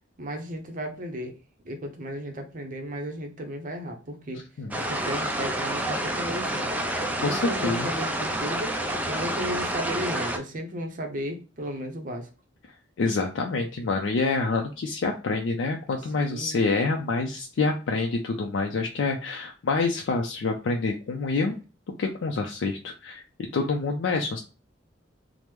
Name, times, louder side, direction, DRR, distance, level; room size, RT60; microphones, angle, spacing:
voice 1, 0.2-1.4 1.6-4.4 4.9-6.7 7.2-8.7 9.1-12.3 13.5-13.6 16.2-16.6, equal, 45° right, 3 dB, 0.6 m, -34 dB
sound 1, 4.7-10.4, right 1 dB, 10° right, 0.3 m, -29 dB
voice 2, 7.2-7.9 13.0-21.6 22.0-23.2 23.5-24.4, left 3 dB, 75° left, 2 dB, 0.4 m, -27 dB
3.0 x 2.0 x 3.3 m, 0.34 s
head